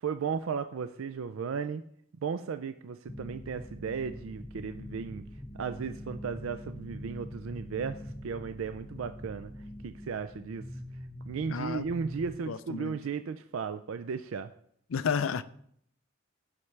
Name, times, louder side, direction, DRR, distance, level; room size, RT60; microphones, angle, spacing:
voice 1, 0.0-1.8 2.2-5.3 5.6-8.0 8.2-9.5 9.8-10.6 11.3-14.5, right 6 dB, 80° right, 0.4 m, -35 dB
sound 1, 3.1-12.4, equal, 10° left, 0.5 m, -44 dB
voice 2, 11.5-11.8 12.5-13.0 14.9-15.4, left 6 dB, 80° left, 0.5 m, -31 dB
14.5 x 5.8 x 3.3 m
head